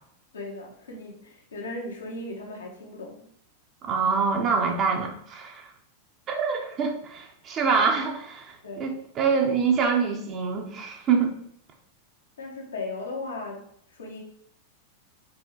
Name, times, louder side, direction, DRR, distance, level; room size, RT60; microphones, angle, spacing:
voice 1, 0.3-3.3 8.6-8.9 12.4-14.2, left 2 dB, 70° left, -1 dB, 1.7 m, -37 dB
voice 2, 3.8-5.7 6.3-11.3, right 5 dB, 30° right, 2 dB, 1.3 m, -25 dB
5.4 x 4.5 x 4.6 m, 0.67 s
figure-of-eight pair, 90°, 0 cm